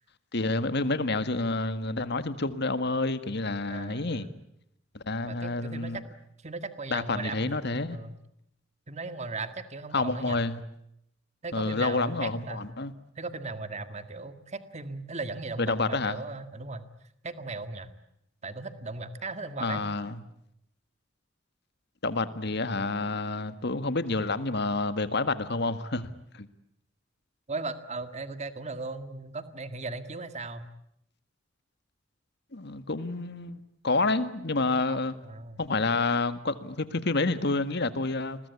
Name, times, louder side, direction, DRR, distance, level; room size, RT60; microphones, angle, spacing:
voice 1, 0.3-4.3 4.9-6.0 6.9-8.0 9.9-10.6 11.5-12.9 15.6-16.2 19.6-20.2 22.0-26.5 32.5-35.1 35.6-38.4, left 3 dB, 60° left, 12 dB, 1.8 m, -29 dB
voice 2, 3.7-4.3 5.3-6.0 6.4-8.2 8.9-10.4 11.4-12.6 13.2-16.9 17.2-17.9 18.4-19.9 27.5-30.7 34.9-35.6, right 3 dB, 35° right, 10 dB, 1.8 m, -37 dB
29.5 x 22.0 x 8.5 m, 0.77 s
head